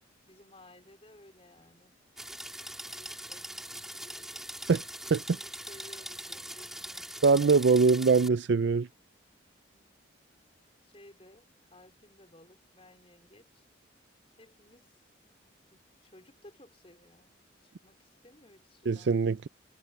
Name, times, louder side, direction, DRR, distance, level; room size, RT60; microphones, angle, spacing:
voice 1, 0.3-2.0 2.6-4.5 5.1-7.1 9.7-9.9 10.8-13.6 14.4-14.9 15.7-19.2, left 1 dB, 30° left, 4.4 m, -57 dB
sound 1, 2.2-8.3, right 1 dB, ahead, 3.5 m, -42 dB
voice 2, 7.2-8.9 18.9-19.5, right 4 dB, 65° right, 0.4 m, -23 dB
head